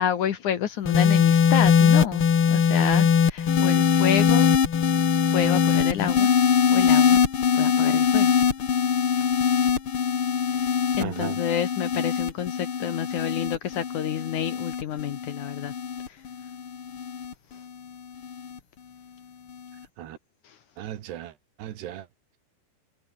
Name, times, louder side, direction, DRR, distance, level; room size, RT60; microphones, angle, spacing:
voice 1, 0.0-4.5 5.3-6.3 6.7-7.2 7.5-8.3 11.0-15.7 16.1-16.2 20.4-20.6, left 9 dB, 60° left, 2.4 m, -29 dB
sound 1, 0.8-17.3 18.2-18.6, left 7 dB, 40° left, 2.2 m, -22 dB
voice 2, 11.0-11.4 20.0-20.2 20.8-21.3 21.6-22.1, right 12 dB, 85° right, 3.9 m, -35 dB
omnidirectional pair, 4.6 m